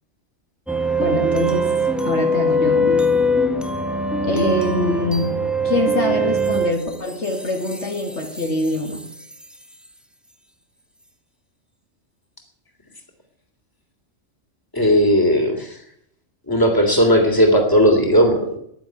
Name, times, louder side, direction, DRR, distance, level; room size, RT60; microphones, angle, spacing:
sound 1, 0.7-9.6, equal, ahead, 1.2 m, -22 dB
voice 1, 1.0-1.7 2.0-3.0 4.2-5.4 5.6-9.0, left 2 dB, 60° left, 2 dB, 2.5 m, -24 dB
voice 2, 14.7-15.7 16.5-18.6, equal, 15° left, 3 dB, 3.0 m, -16 dB
11.5 x 10.5 x 9.3 m, 0.71 s
omnidirectional pair, 1.3 m